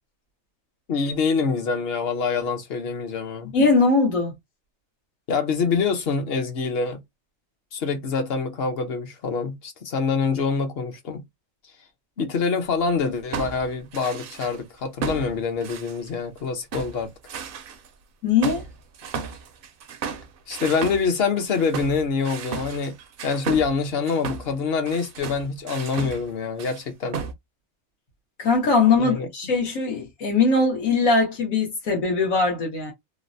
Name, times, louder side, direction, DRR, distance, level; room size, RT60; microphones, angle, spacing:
voice 1, 0.9-3.5 5.3-7.0 7.7-11.2 12.2-17.1 20.5-22.9 23.2-27.2 29.0-29.3, left 5 dB, 55° left, 0.9 m, -25 dB
voice 2, 3.5-4.3 18.2-18.6 28.4-32.9, left 4 dB, 90° left, 1.4 m, -21 dB
sound 1, 12.9-14.6 15.0-16.4 16.7-17.9 18.4-26.3 26.6-26.8 27.1-27.3, right 5 dB, 65° right, 0.5 m, -34 dB
3.2 x 2.0 x 2.5 m
omnidirectional pair, 1.4 m